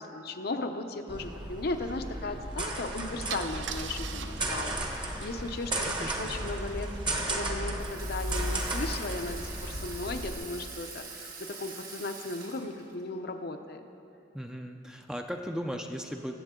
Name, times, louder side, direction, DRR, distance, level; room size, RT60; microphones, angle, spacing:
voice 1, 0.0-6.9 7.3-13.8, left 2 dB, 60° left, 6 dB, 0.7 m, -36 dB
sound 1, 1.1-10.3, right 1 dB, 25° right, 1.1 m, -34 dB
Car / Engine starting / Idling, 2.6-2.8 3.3-7.1, right 8 dB, 70° right, 0.5 m, -43 dB
voice 2, 5.8-6.5 14.3-16.4, equal, 5° right, 4 dB, 0.5 m, -37 dB
Water tap faucet / Sink (filling or washing), 7.8-13.0, right 4 dB, 55° right, 1.7 m, -44 dB
22.5 x 7.8 x 3.7 m, 2.8 s
head